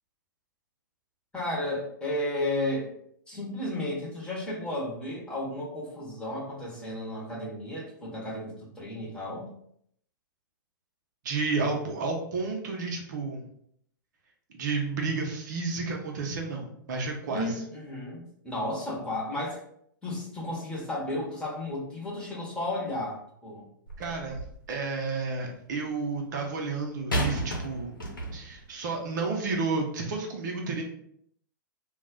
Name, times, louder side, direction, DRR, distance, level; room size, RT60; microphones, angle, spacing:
voice 1, 1.3-2.9 3.3-9.5 17.3-19.6 20.0-23.6, left 1 dB, 10° left, -5 dB, 1.0 m, -33 dB
voice 2, 11.2-13.5 14.5-17.6 24.0-24.4 24.7-27.9 28.3-30.8, right 4 dB, 60° right, 1 dB, 0.6 m, -31 dB
sound 1, 23.9-24.7 27.1-28.6 29.4-29.6, right 1 dB, 85° left, 0.8 m, -32 dB
2.3 x 2.0 x 3.7 m, 0.69 s
hypercardioid pair, 110°, 11 cm